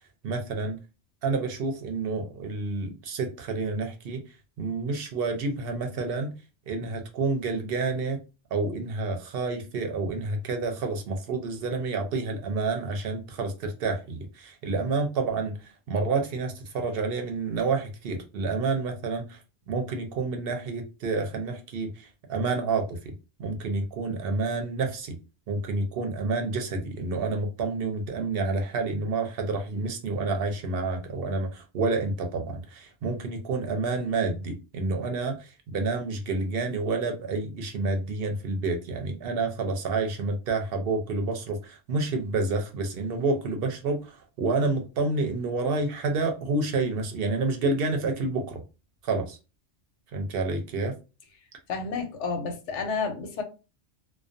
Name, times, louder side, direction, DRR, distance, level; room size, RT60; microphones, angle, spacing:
voice 1, 0.2-0.8 1.2-4.2 4.6-6.3 6.7-8.2 8.5-19.4 19.7-23.1 23.4-25.2 25.5-48.6 49.0-49.4 50.1-50.9, right 3 dB, 60° right, 0.7 m, -29 dB
voice 2, 51.7-53.4, left 5 dB, 90° left, 1.0 m, -30 dB
2.3 x 2.2 x 2.5 m
omnidirectional pair, 1.2 m